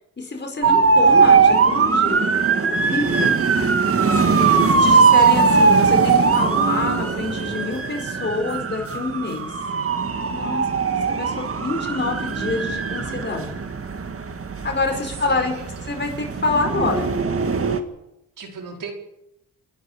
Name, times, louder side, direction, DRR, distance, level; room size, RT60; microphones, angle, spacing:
voice 1, 0.2-3.6 4.2-9.5 10.3-10.6 11.1-13.6 14.6-15.5 15.9-17.1, left 3 dB, 35° left, 2 dB, 5.0 m, -27 dB
sound 1, 0.6-17.8, right 5 dB, 45° right, 1.9 m, -19 dB
voice 2, 4.3-4.6 10.4-10.7 14.9-15.9 18.4-18.9, right 5 dB, 75° right, 2 dB, 4.8 m, -37 dB
28.5 x 11.0 x 8.7 m, 0.85 s
cardioid pair, 95°, 32 cm